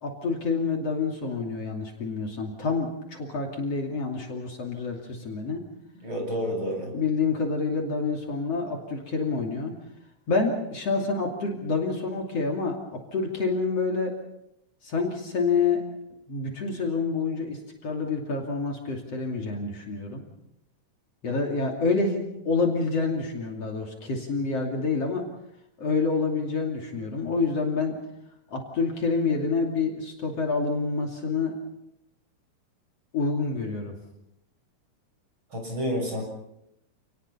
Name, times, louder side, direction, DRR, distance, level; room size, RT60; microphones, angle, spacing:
voice 1, 0.0-5.6 6.9-9.7 10.3-14.1 14.8-15.8 16.3-20.2 21.2-25.3 25.8-28.0 28.5-31.5 33.1-34.0, left 4 dB, 50° left, 1 dB, 3.7 m, -27 dB
voice 2, 6.0-6.9 35.5-36.2, equal, 40° right, 2 dB, 7.5 m, -29 dB
28.5 x 19.5 x 5.7 m, 0.81 s
omnidirectional pair, 3.6 m